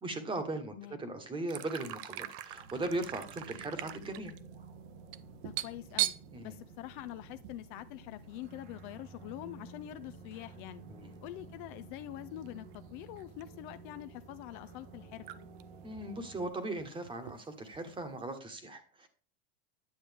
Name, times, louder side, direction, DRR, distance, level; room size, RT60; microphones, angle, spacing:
voice 1, 0.0-4.3 6.3-6.6 10.9-11.1 15.8-19.1, right 2 dB, 15° right, 8 dB, 1.3 m, -38 dB
sound 1, 1.5-7.6 7.9-8.0 8.4-8.8 9.7-9.8 11.2-11.4 12.4-12.5 12.7-13.6 14.0-14.1 14.9-15.0 15.2-15.6 15.9-18.1, right 15 dB, 55° right, 0.6 m, -40 dB
sound 2, 2.4-16.5, right 4 dB, 80° right, 1.6 m, -52 dB
voice 2, 5.4-6.1 6.4-10.8 11.2-15.3, left 14 dB, 50° left, 11 dB, 0.5 m, -45 dB
9.5 x 7.2 x 3.5 m, 0.40 s
supercardioid pair, 130°, 32 cm